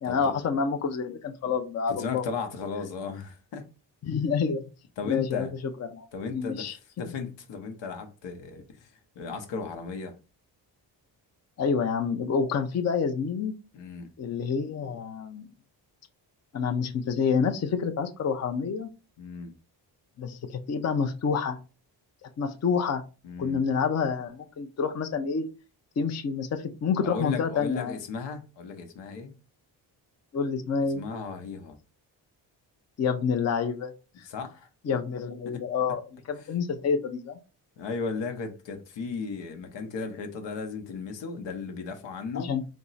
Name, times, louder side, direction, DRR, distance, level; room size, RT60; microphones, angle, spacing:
voice 1, 0.0-2.2 4.0-4.6 5.1-5.5 5.8-6.7 11.6-13.5 14.2-15.5 16.5-18.9 20.2-21.6 22.4-23.0 23.4-25.4 26.0-28.0 30.3-31.1 33.0-33.9 34.2-34.3 34.9-36.0 36.3-37.4 42.3-42.6, left 6 dB, 35° left, 0.5 m, -28 dB
voice 2, 1.9-3.7 5.0-5.5 6.1-10.2 13.7-14.1 19.2-19.5 23.2-23.6 27.0-29.4 30.8-31.8 34.2-34.7 35.5-35.7 36.4-36.5 37.8-42.5, left 5 dB, 75° left, 0.9 m, -36 dB
3.5 x 2.0 x 4.0 m
cardioid pair, 70°, 44 cm